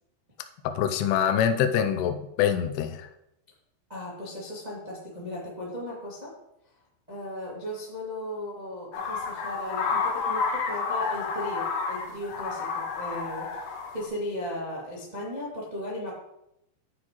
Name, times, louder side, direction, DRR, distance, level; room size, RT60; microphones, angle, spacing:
voice 1, 0.8-3.1, left 9 dB, 85° left, 7 dB, 2.3 m, -25 dB
voice 2, 3.9-6.3 7.1-13.7 13.9-16.1, left 1 dB, 75° right, -6 dB, 0.4 m, -36 dB
sound 1, 8.9-14.1, left 5 dB, 70° left, 2.9 m, -30 dB
9.6 x 9.5 x 3.1 m, 0.83 s
omnidirectional pair, 5.6 m